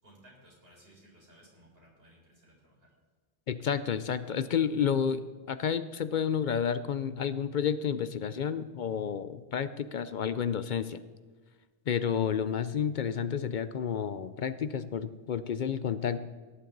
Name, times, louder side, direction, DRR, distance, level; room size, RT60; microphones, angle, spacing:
voice 1, 0.0-2.9 16.0-16.2, right 1 dB, 70° right, -3 dB, 4.8 m, -59 dB
voice 2, 3.5-11.0 11.9-16.2, left 7 dB, 60° left, 14 dB, 0.6 m, -30 dB
17.0 x 10.5 x 3.9 m, 1.4 s
omnidirectional pair, 1.0 m